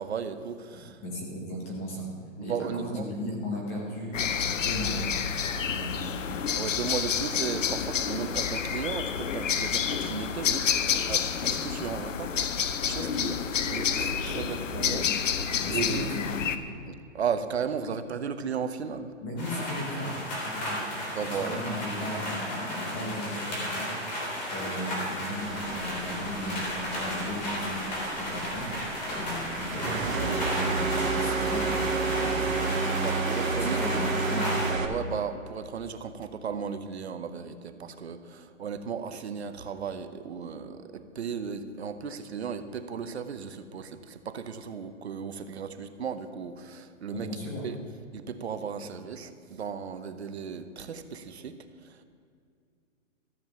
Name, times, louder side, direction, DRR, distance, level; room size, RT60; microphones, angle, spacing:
voice 1, 0.0-1.0 2.4-3.1 6.5-16.2 16.8-19.1 21.1-21.6 32.9-34.1 34.8-47.4 47.6-47.8 48.1-52.0, right 6 dB, 55° right, 10 dB, 0.8 m, -35 dB
voice 2, 1.0-2.1 2.4-4.2 4.5-6.1 15.6-16.4 19.2-32.5 32.9-33.2 33.5-34.5 47.1-47.6, left 1 dB, 10° left, -1 dB, 0.8 m, -36 dB
sound 1, 4.1-16.6, left 7 dB, 70° left, 0.9 m, -29 dB
sound 2, 19.4-34.7, left 1 dB, 35° left, 3.4 m, -34 dB
sound 3, 25.4-34.9, right 4 dB, 80° right, 1.4 m, -31 dB
14.0 x 7.4 x 7.0 m, 2.4 s
hypercardioid pair, 175°, 39 cm